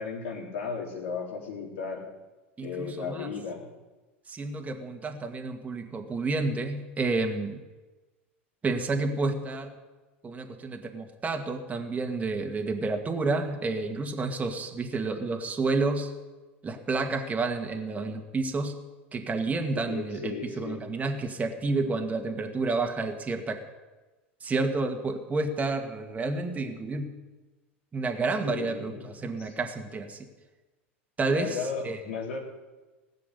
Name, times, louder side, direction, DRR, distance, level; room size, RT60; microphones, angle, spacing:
voice 1, 0.0-2.0 2.6-3.7 19.7-20.9 28.4-29.1 29.4-29.5 31.3-32.4, left 5 dB, 70° left, -1 dB, 3.9 m, -35 dB
voice 2, 2.6-3.3 4.3-7.6 8.6-9.7 10.2-16.1 16.6-18.8 19.1-23.6 24.4-27.1 27.9-30.2 31.2-32.0, right 3 dB, 20° right, 4 dB, 2.1 m, -30 dB
18.0 x 7.6 x 8.4 m, 1.2 s
hypercardioid pair, 85°, 7 cm